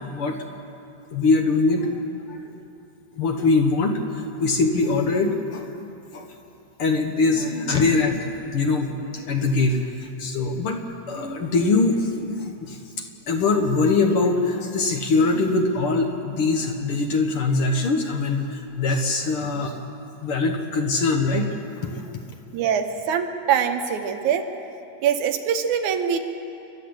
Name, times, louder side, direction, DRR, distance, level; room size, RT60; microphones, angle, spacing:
voice 1, 1.1-2.0 2.3-2.6 3.2-5.7 6.1-6.3 6.8-10.8 11.1-12.8 13.3-19.7 20.2-22.1, left 3 dB, 55° left, 4 dB, 1.8 m, -22 dB
voice 2, 22.5-24.5 25.0-26.2, right 8 dB, 75° right, 7 dB, 2.5 m, -23 dB
29.5 x 12.0 x 7.9 m, 2.7 s
omnidirectional pair, 3.5 m